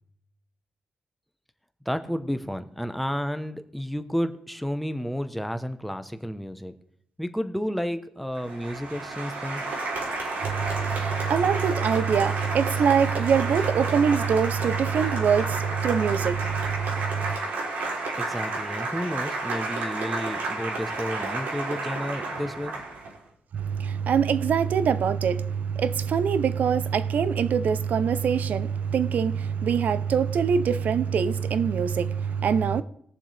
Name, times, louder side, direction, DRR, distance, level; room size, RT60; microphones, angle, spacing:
voice 1, 1.8-6.7 7.2-9.6 18.1-22.8, equal, ahead, 0.9 m, -31 dB
Applause, 8.3-23.2, right 3 dB, 90° right, 3.3 m, -31 dB
voice 2, 10.4-17.4 23.5-32.8, right 7 dB, 60° right, 0.6 m, -24 dB
21.0 x 7.2 x 3.3 m
cardioid pair, 115°, 3 cm